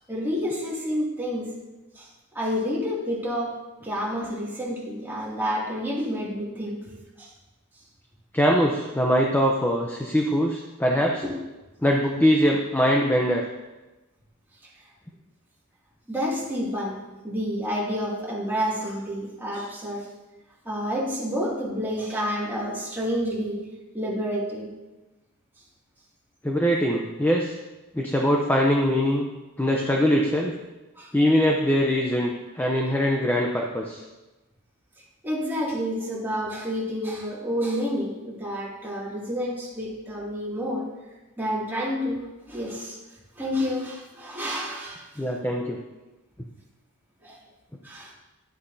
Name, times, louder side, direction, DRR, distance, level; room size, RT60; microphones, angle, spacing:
voice 1, 0.1-1.5 1.9-2.1 2.3-3.6 3.8-6.8 7.2-7.3 11.2-11.3 16.1-17.0 17.2-20.1 20.6-23.6 23.9-24.7 31.0-31.1 35.2-40.9 41.4-43.0 43.4-45.2 47.2-47.4 47.8-48.1, equal, 10° right, -6 dB, 2.4 m, -29 dB
voice 2, 8.3-11.2 11.8-13.5 26.4-27.6 27.9-29.3 29.6-30.5 31.1-34.0 45.2-45.8, equal, 10° left, 0 dB, 0.6 m, -22 dB
11.5 x 8.5 x 2.7 m, 1.1 s
head